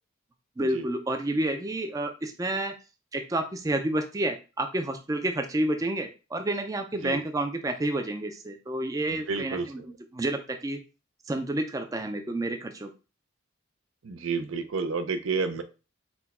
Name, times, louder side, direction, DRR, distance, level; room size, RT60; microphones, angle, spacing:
voice 1, 0.6-2.8 3.1-10.8 11.3-12.9, right 1 dB, 15° right, 5 dB, 0.4 m, -30 dB
voice 2, 9.3-9.7 14.0-15.6, right 4 dB, 80° right, 9 dB, 0.5 m, -30 dB
4.4 x 2.2 x 4.1 m, 0.31 s
head